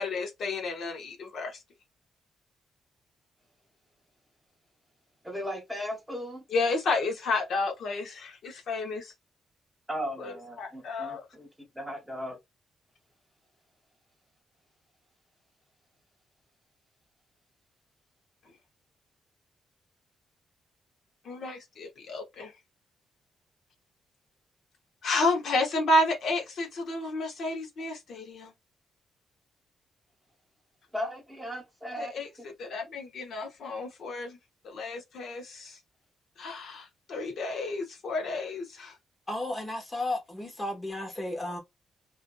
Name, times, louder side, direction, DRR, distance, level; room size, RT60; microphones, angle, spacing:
voice 1, 0.0-1.6 6.5-9.1 10.2-11.3 21.2-22.5 25.0-28.5 32.0-32.3 32.6-34.4 34.6-35.8 36.4-38.9, left 2 dB, 70° left, 0.7 m, -31 dB
voice 2, 5.2-6.4 9.9-11.5 11.8-12.4 30.9-32.3, equal, 5° right, 0.8 m, -36 dB
voice 3, 39.3-41.6, left 1 dB, 20° left, 1.0 m, -33 dB
2.6 x 2.4 x 2.2 m
cardioid pair, 110°, 0 cm